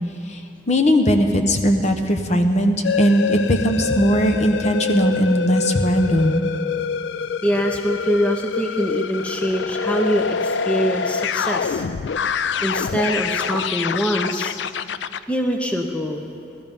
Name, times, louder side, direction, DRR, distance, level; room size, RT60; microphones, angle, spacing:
voice 1, 0.7-6.4, equal, 40° left, 5 dB, 0.9 m, -19 dB
sound 1, 2.8-15.2, left 6 dB, 85° left, 0.4 m, -26 dB
voice 2, 7.4-11.8 12.6-14.5 15.3-16.3, equal, 5° left, 2 dB, 0.7 m, -23 dB
16.0 x 13.0 x 5.3 m, 2.4 s
head